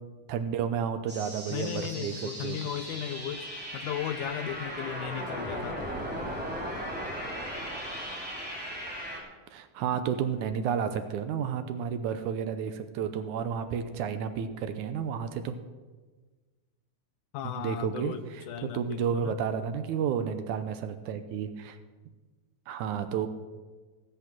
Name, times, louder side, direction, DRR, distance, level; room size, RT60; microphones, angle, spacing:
voice 1, 0.3-2.1 2.4-2.6 9.5-15.6 17.4-21.8 22.7-23.3, right 7 dB, 75° right, 9 dB, 2.1 m, -31 dB
sound 1, 1.1-9.2, equal, 5° right, 2.6 m, -37 dB
voice 2, 1.5-3.5 3.7-5.8 6.8-6.9 17.3-19.3, left 10 dB, 80° left, 11 dB, 2.1 m, -36 dB
17.5 x 8.3 x 6.0 m, 1.3 s
omnidirectional pair, 3.8 m